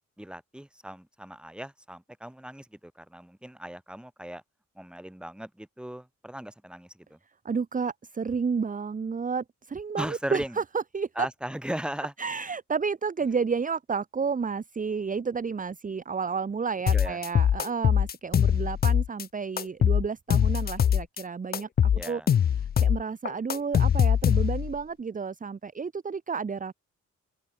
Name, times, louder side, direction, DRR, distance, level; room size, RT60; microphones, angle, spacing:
voice 1, 0.2-4.4 4.8-7.2 10.0-10.6 11.2-12.1 16.9-17.2 21.9-22.3, right 1 dB, 5° right, 4.1 m, -37 dB
voice 2, 7.4-11.3 12.2-21.7 22.0-22.2 22.6-26.7, right 5 dB, 25° right, 1.5 m, -31 dB
sound 1, 16.9-19.2 19.6-21.2 21.5-24.8, left 9 dB, 35° left, 0.4 m, -23 dB
open air
cardioid pair, 145°, 29 cm